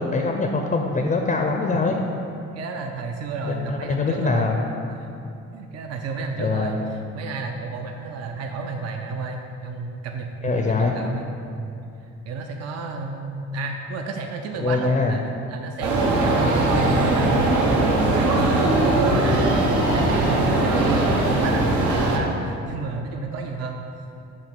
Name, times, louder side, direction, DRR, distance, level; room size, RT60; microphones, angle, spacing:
voice 1, 0.0-2.0 3.4-4.7 6.4-6.8 10.4-11.0 14.6-15.2, left 3 dB, 30° left, 2 dB, 0.5 m, -23 dB
voice 2, 2.5-4.5 5.5-11.3 11.6-11.7 12.3-15.2 15.5-19.6 19.9-23.9, right 3 dB, 55° right, 3 dB, 0.5 m, -31 dB
sound 1, 15.8-22.2, right 2 dB, 85° right, 1.0 m, -20 dB
7.3 x 3.0 x 5.9 m, 2.7 s
cardioid pair, 90°, 30 cm